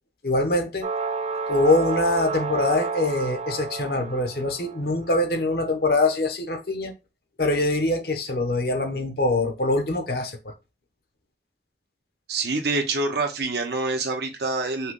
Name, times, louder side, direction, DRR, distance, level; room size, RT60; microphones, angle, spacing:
voice 1, 0.2-0.8 1.5-6.9 7.4-10.4, left 2 dB, 55° left, 1.0 m, -23 dB
sound 1, 0.8-4.9, right 4 dB, 35° right, 0.4 m, -30 dB
voice 2, 12.3-14.9, right 3 dB, 60° right, 0.9 m, -26 dB
5.6 x 2.3 x 3.7 m
head